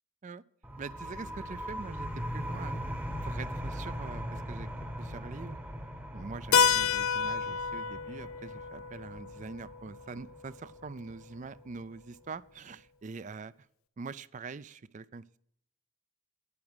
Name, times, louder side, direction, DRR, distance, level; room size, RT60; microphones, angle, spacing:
sound 1, 0.6-12.0, equal, 10° right, 0.9 m, -40 dB
voice 1, 0.8-2.8 3.2-4.7 5.0-5.6 6.1-13.5 14.0-15.4, right 4 dB, 35° right, 18 dB, 0.4 m, -44 dB
Keyboard (musical), 6.5-11.0, left 6 dB, 80° left, 0.4 m, -30 dB
9.8 x 8.6 x 6.2 m, 0.70 s
head